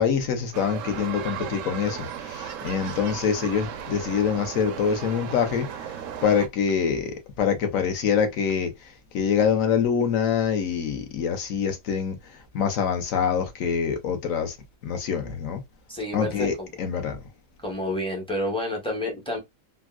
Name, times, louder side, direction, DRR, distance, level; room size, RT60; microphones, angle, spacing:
voice 1, 0.0-14.6 14.8-15.6 16.1-17.2, left 7 dB, 60° left, 0.9 m, -25 dB
sound 1, 0.5-6.5, right 8 dB, 75° right, 0.7 m, -36 dB
voice 2, 15.9-16.7 17.6-19.4, left 1 dB, 10° left, 0.3 m, -29 dB
3.6 x 2.2 x 2.2 m
omnidirectional pair, 1.9 m